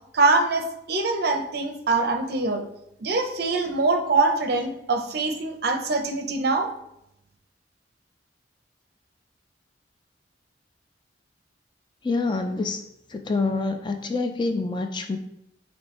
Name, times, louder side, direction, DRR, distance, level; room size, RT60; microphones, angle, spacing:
voice 1, 0.1-2.6 3.0-6.7, right 3 dB, 60° right, 4 dB, 0.6 m, -23 dB
voice 2, 12.0-12.8 13.1-15.2, left 3 dB, 25° left, 6 dB, 0.3 m, -26 dB
4.5 x 3.1 x 3.1 m, 0.81 s
head